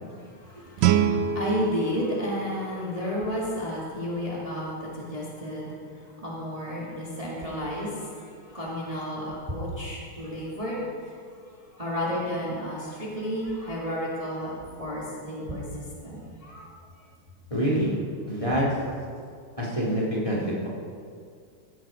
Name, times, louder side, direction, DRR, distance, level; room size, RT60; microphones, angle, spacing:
voice 1, 0.1-11.4 11.7-16.7 16.9-17.0, equal, 15° right, -6 dB, 2.1 m, -32 dB
Guitar, 0.8-3.6, right 8 dB, 70° right, 1.2 m, -27 dB
voice 2, 17.5-17.9 18.3-18.6 19.6-20.7, equal, 15° left, -6 dB, 2.5 m, -26 dB
16.5 x 8.5 x 5.1 m, 2.2 s
omnidirectional pair, 2.4 m